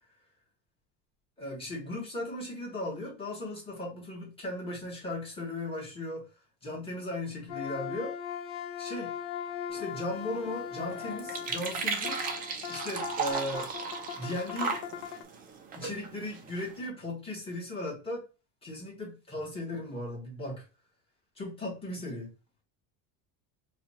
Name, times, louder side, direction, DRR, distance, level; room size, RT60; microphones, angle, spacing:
voice 1, 1.4-6.2 6.6-8.1 8.8-9.1 9.7-12.2 12.7-13.7 14.2-14.8 15.7-18.2 18.6-20.6 21.4-22.3, left 1 dB, 15° left, -3 dB, 1.3 m, -37 dB
sound 1, 7.5-15.2, left 9 dB, 65° left, 0.6 m, -39 dB
sound 2, 9.7-16.9, right 5 dB, 25° right, 0.3 m, -37 dB
2.8 x 2.3 x 4.1 m, 0.32 s
cardioid pair, 155°, 41 cm